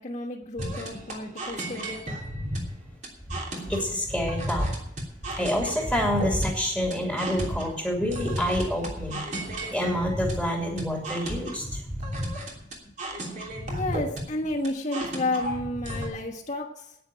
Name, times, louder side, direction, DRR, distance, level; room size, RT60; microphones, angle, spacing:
voice 1, 0.0-2.2 8.8-8.9 9.3-10.1 12.6-12.9 13.7-17.0, left 2 dB, 40° left, -5 dB, 1.5 m, -32 dB
sound 1, 0.6-16.1, equal, 45° right, 3.0 m, -34 dB
voice 2, 3.7-4.7 5.4-9.2 9.7-11.8, equal, 5° right, -1 dB, 2.6 m, -27 dB
10.0 x 9.3 x 8.8 m, 0.79 s
head